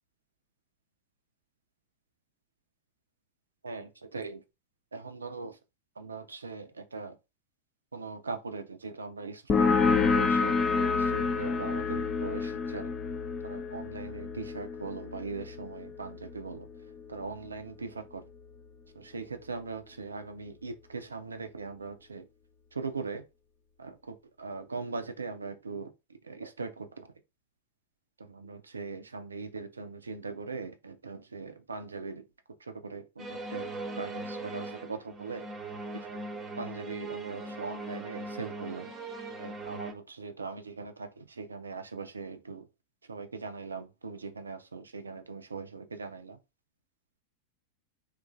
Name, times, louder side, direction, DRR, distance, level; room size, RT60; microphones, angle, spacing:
voice 1, 3.6-4.4 4.9-5.6 6.0-7.2 7.9-12.9 13.4-16.7 17.1-18.2 18.9-22.3 22.7-23.2 23.8-27.1 28.2-32.3 32.6-35.5 35.9-36.2 36.6-38.9 39.4-42.7 43.1-46.4, right 4 dB, 75° right, 0.4 m, -40 dB
sound 1, 9.5-16.8, left 4 dB, 20° left, 0.5 m, -28 dB
sound 2, 33.2-39.9, right 2 dB, 20° right, 0.6 m, -40 dB
2.9 x 2.4 x 2.4 m
figure-of-eight pair, 90°, 0 cm